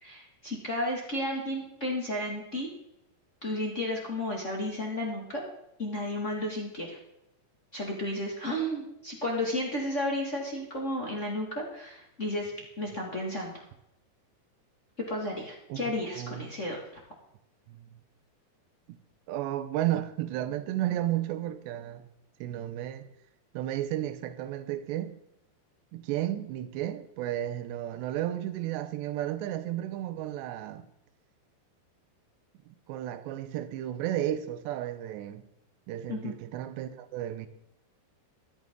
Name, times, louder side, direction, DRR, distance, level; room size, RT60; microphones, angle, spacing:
voice 1, 0.0-2.7 3.4-5.4 5.8-7.0 7.7-13.5 15.0-16.8 36.1-36.3, left 1 dB, 40° left, 1.0 m, -33 dB
voice 2, 16.0-16.4 17.7-18.0 19.3-22.1 22.4-23.1 23.5-25.2 25.9-30.9 32.7-35.5 35.9-37.5, right 13 dB, 85° right, 3.0 m, -33 dB
13.5 x 12.5 x 3.7 m
omnidirectional pair, 5.0 m